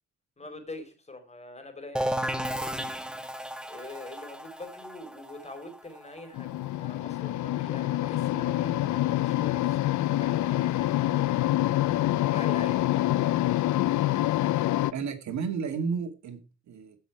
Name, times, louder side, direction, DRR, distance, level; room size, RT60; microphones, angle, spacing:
voice 1, 0.4-2.6 3.7-11.4 12.1-13.0, left 2 dB, 20° left, 4.2 m, -44 dB
sound 1, 2.0-7.5, equal, 5° right, 1.4 m, -34 dB
sound 2, 6.3-14.9, left 15 dB, 70° left, 0.7 m, -26 dB
voice 2, 14.9-17.0, right 5 dB, 65° right, 2.2 m, -32 dB
15.5 x 6.3 x 4.7 m
cardioid pair, 90°, 30 cm